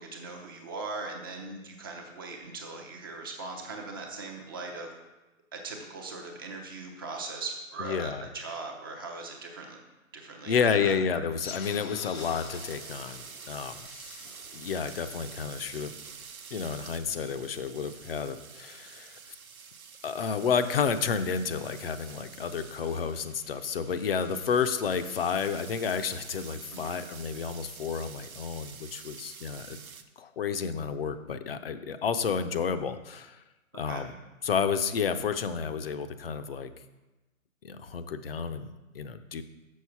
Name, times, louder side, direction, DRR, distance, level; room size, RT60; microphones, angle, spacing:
voice 1, 0.0-4.9 5.5-9.8 10.1-11.2 26.7-27.0 33.8-34.0, right 3 dB, 15° right, 1 dB, 0.6 m, -40 dB
voice 2, 7.8-8.3 10.4-13.8 14.5-15.9 16.5-19.2 20.0-29.8 30.2-33.4 33.7-34.1 34.4-36.7 37.6-39.4, left 6 dB, 45° left, 10 dB, 0.6 m, -31 dB
sound 1, 11.3-16.3, left 6 dB, 90° left, 0.9 m, -46 dB
sound 2, 12.1-30.0, right 6 dB, 90° right, 0.9 m, -48 dB
6.4 x 6.4 x 5.8 m, 1.1 s
hypercardioid pair, 150°, 41 cm